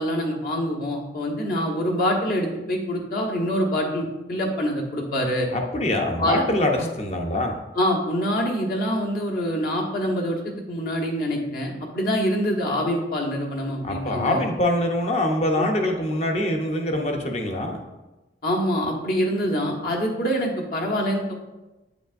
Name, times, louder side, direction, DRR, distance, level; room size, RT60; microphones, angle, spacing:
voice 1, 0.0-5.5 6.2-6.4 6.8-6.9 7.7-14.4 15.6-15.7 18.4-21.3, equal, 55° left, -1 dB, 1.1 m, -25 dB
voice 2, 5.5-7.6 13.8-17.8, left 1 dB, 35° left, 2 dB, 0.8 m, -24 dB
8.4 x 5.0 x 2.6 m, 1.1 s
head